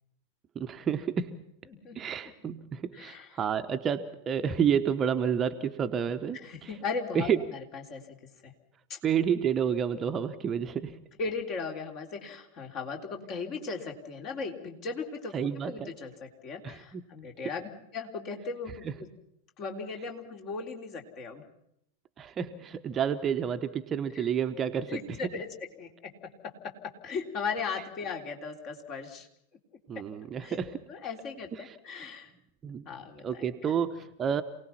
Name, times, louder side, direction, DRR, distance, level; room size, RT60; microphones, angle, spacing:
voice 1, 0.5-1.4 1.9-6.7 7.1-7.4 9.0-11.0 15.3-15.9 16.6-17.1 22.2-25.0 29.9-30.8 31.6-31.7 32.6-32.9 33.2-34.4, right 8 dB, 25° right, 8 dB, 1.1 m, -30 dB
voice 2, 1.7-2.1 2.9-3.4 6.4-8.0 8.4-8.5 8.9-9.0 11.2-19.1 19.6-21.4 24.1-24.3 24.9-29.3 30.0-30.1 30.4-30.6 30.9-32.3 32.9-33.7, left 4 dB, 35° left, 3 dB, 3.5 m, -38 dB
28.0 x 19.0 x 5.8 m, 0.75 s
figure-of-eight pair, 90°, 0 cm